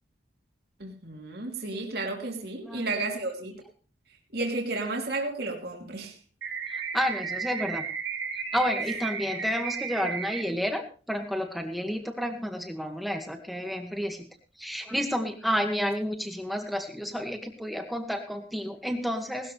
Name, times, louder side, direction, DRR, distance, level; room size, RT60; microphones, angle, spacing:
voice 1, 0.8-3.5 4.3-6.2 8.8-9.0, right 2 dB, 55° right, 1 dB, 3.0 m, -32 dB
sound 1, 6.4-10.4, right 6 dB, 85° right, 4.0 m, -34 dB
voice 2, 6.7-7.8 8.5-14.3 14.6-19.5, equal, ahead, 4 dB, 2.0 m, -30 dB
19.0 x 13.0 x 3.4 m, 0.37 s
head